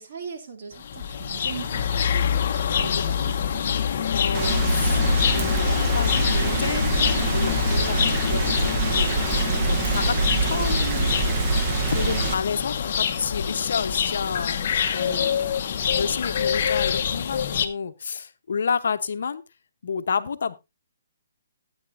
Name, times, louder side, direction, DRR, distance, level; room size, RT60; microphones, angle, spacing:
voice 1, 0.0-3.7 8.9-9.3 14.9-15.4, right 5 dB, 45° right, 4 dB, 2.5 m, -39 dB
sound 1, 0.7-17.7, left 8 dB, 45° left, 1.0 m, -25 dB
voice 2, 4.1-5.0 5.4-8.9 9.6-11.2 11.9-14.6 14.9-15.3 16.0-19.4 19.8-20.6, left 6 dB, 65° left, 10 dB, 0.9 m, -30 dB
Rain, 4.3-12.3, right 5 dB, 25° right, 0.9 m, -25 dB
14.5 x 8.9 x 2.6 m, 0.23 s
hypercardioid pair, 165°, 0 cm